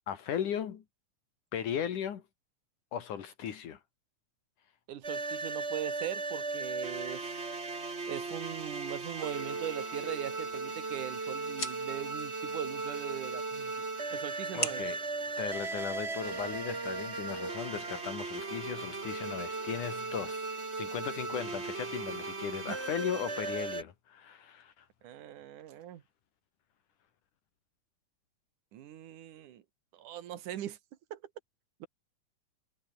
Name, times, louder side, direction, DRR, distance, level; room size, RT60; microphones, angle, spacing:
voice 1, 0.1-0.8 1.5-2.2 2.9-3.8 14.5-15.0 15.4-24.9, left 9 dB, 75° left, 3.5 m, -37 dB
voice 2, 4.9-7.5 8.1-13.7 14.1-14.8 22.7-22.8 25.0-26.0 28.7-29.6 29.9-30.8 31.1-31.2 31.8-31.9, right 11 dB, 80° right, 3.0 m, -40 dB
sound 1, 5.0-23.8, right 3 dB, 20° right, 2.4 m, -37 dB
sound 2, 10.3-16.3, left 2 dB, 30° left, 7.7 m, -44 dB
omnidirectional pair, 3.6 m